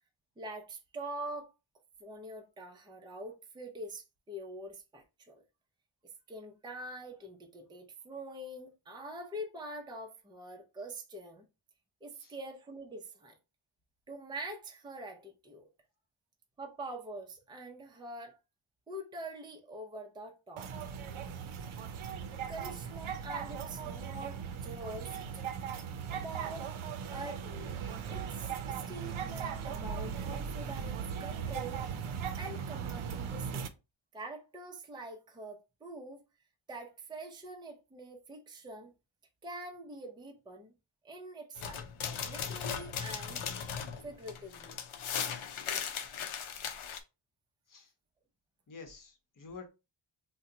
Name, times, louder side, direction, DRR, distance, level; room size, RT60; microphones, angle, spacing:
voice 1, 0.4-1.5 2.0-5.4 6.0-11.5 12.0-13.4 14.1-15.6 16.6-18.4 18.9-20.7 22.5-25.4 26.1-26.7 27.1-27.8 28.0-33.7 34.1-36.2 36.7-38.9 39.4-40.7 41.0-43.4 44.0-44.8, right 1 dB, 10° right, 0.5 m, -45 dB
sound 1, 20.6-33.7, right 7 dB, 80° right, 0.6 m, -38 dB
sound 2, 41.6-47.0, left 7 dB, 85° left, 0.7 m, -38 dB
voice 2, 48.7-49.7, left 4 dB, 45° left, 0.9 m, -49 dB
2.8 x 2.2 x 3.8 m
wide cardioid pair, 120°, 48 cm